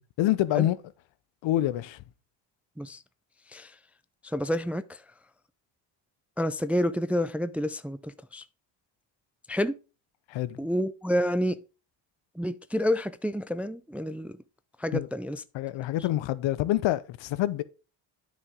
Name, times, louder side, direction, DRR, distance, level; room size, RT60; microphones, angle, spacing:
voice 1, 0.2-0.8 1.4-2.0 10.3-10.6 14.9-15.1 15.5-17.6, left 14 dB, 70° left, 0.7 m, -26 dB
voice 2, 4.2-5.0 6.4-8.4 9.5-9.8 10.6-11.6 12.4-14.4 14.8-15.4, equal, 5° right, 0.3 m, -29 dB
9.4 x 5.0 x 3.6 m
supercardioid pair, 65°, 47 cm